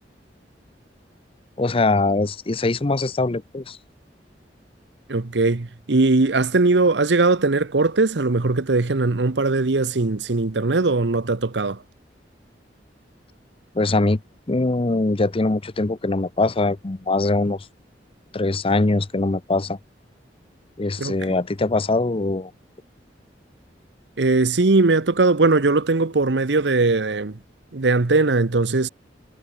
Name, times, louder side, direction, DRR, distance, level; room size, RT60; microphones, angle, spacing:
voice 1, 1.6-3.8 13.7-14.2 14.5-17.7 18.3-19.8 20.8-22.5, left 2 dB, 30° left, 0.7 m, -22 dB
voice 2, 5.1-11.8 21.0-21.1 24.2-27.4 27.7-28.9, right 3 dB, 80° right, 0.9 m, -20 dB
head